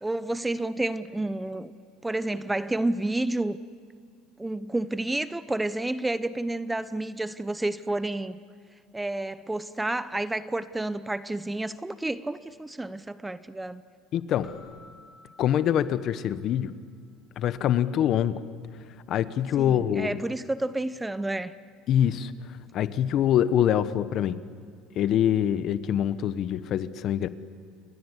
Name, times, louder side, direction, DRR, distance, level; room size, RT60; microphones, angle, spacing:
voice 1, 0.0-1.7 2.0-3.6 4.4-8.4 8.9-13.8 19.6-21.5, right 2 dB, 10° right, 14 dB, 0.8 m, -30 dB
voice 2, 14.1-14.5 15.4-16.7 17.4-18.4 19.1-20.2 21.9-22.3 22.7-24.4 25.0-27.3, left 10 dB, 50° left, 13 dB, 1.2 m, -24 dB
Keyboard (musical), 14.4-16.8, left 4 dB, 30° left, 4.4 m, -54 dB
28.5 x 22.5 x 8.3 m, 2.1 s
supercardioid pair, 110°, 0 cm